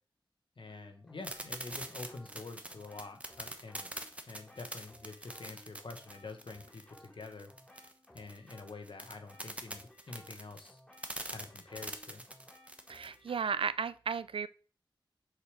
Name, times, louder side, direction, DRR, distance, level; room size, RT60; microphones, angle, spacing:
voice 1, 0.6-3.9 4.3-7.5 8.1-10.8 11.3-12.2, left 3 dB, 65° left, 6 dB, 1.3 m, -47 dB
sound 1, 0.7-13.8, left 1 dB, 10° left, 2.5 m, -60 dB
sound 2, 1.2-13.1, right 1 dB, 15° right, 0.9 m, -44 dB
voice 2, 12.9-14.5, right 6 dB, 80° right, 15 dB, 0.4 m, -34 dB
6.6 x 5.0 x 4.9 m, 0.39 s
wide cardioid pair, 85°, 9 cm